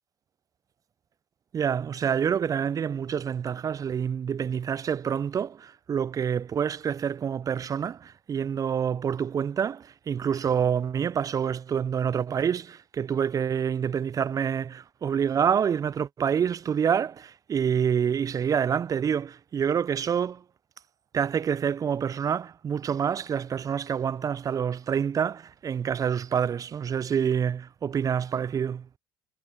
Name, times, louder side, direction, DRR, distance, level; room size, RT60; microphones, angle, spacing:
voice 1, 1.5-20.4 21.1-28.9, right 7 dB, 35° right, 0.3 m, -27 dB
hypercardioid pair, 65°, 11 cm